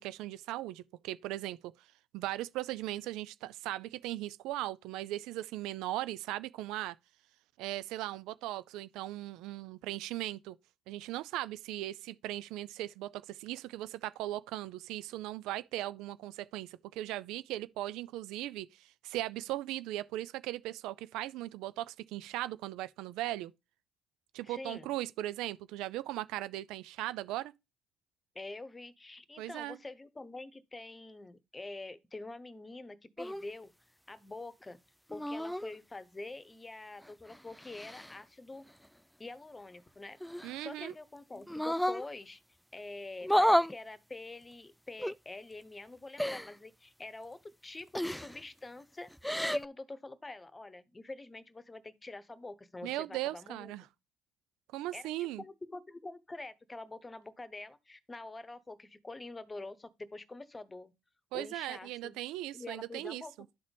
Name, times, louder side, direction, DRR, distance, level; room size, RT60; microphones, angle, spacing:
voice 1, 0.0-1.7 2.1-7.0 7.6-10.6 10.9-23.5 24.3-27.5 29.4-29.8 40.4-40.9 52.8-53.9 54.7-55.4 61.3-63.2, right 15 dB, 80° right, 0.4 m, -38 dB
voice 2, 24.4-24.9 28.3-33.7 34.1-34.8 35.1-38.6 39.2-40.2 40.6-42.4 42.7-49.1 49.5-53.9 54.9-60.9 61.3-62.1 62.5-63.3, left 2 dB, 20° left, 1.0 m, -46 dB
sound 1, 33.2-33.4 35.1-35.7 37.0-38.1 40.2-40.9 41.5-42.0 43.2-43.7 45.0-45.1 46.2-46.5 47.9-48.4 49.1-49.7, equal, 5° left, 0.3 m, -31 dB
12.0 x 4.0 x 3.3 m
supercardioid pair, 60°, 0 cm